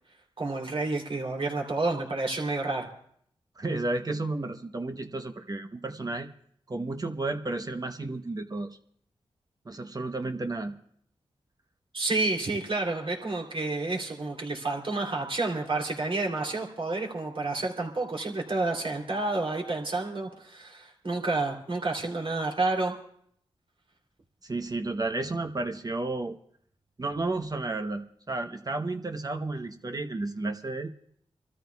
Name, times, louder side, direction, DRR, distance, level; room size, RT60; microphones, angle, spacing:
voice 1, 0.4-2.9 11.9-22.9, right 2 dB, 55° right, 0 dB, 3.1 m, -30 dB
voice 2, 3.6-6.3 6.7-8.7 9.7-10.7 24.4-26.4 27.0-30.9, right 2 dB, 35° right, 6 dB, 0.9 m, -32 dB
27.0 x 13.5 x 2.3 m, 0.66 s
cardioid pair, 50°, 11 cm